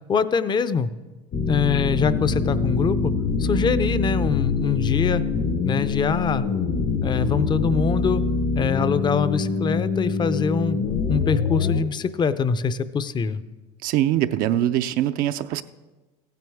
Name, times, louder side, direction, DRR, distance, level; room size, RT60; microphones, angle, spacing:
voice 1, 0.1-0.9 1.4-3.1 3.4-5.2 5.6-6.5 7.0-8.2 8.6-10.8 11.1-13.4, left 6 dB, 30° left, 14 dB, 0.5 m, -24 dB
sound 1, 1.3-11.8, left 4 dB, 50° left, 0.9 m, -24 dB
voice 2, 13.8-15.6, right 12 dB, 60° right, 10 dB, 0.5 m, -22 dB
15.0 x 9.3 x 3.5 m, 1.2 s
supercardioid pair, 95°, 16 cm